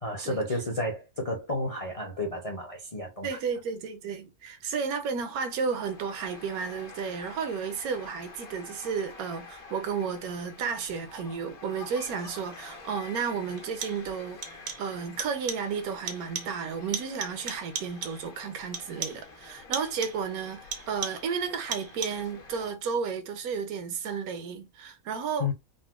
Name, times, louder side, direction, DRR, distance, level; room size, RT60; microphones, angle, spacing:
voice 1, 0.0-3.4 25.4-25.5, left 2 dB, 50° left, 0.4 m, -32 dB
voice 2, 3.2-25.5, right 6 dB, 85° right, 1.1 m, -33 dB
sound 1, 5.5-22.7, left 4 dB, 75° left, 1.4 m, -48 dB
sound 2, 12.5-12.6 13.6-14.1 14.4-14.9 15.2-15.7 16.1-16.6 16.9-18.3 18.7-19.3 19.7-20.3 20.7-21.4 21.7-22.3, right 6 dB, 65° right, 0.5 m, -37 dB
3.9 x 2.0 x 2.4 m
omnidirectional pair, 1.5 m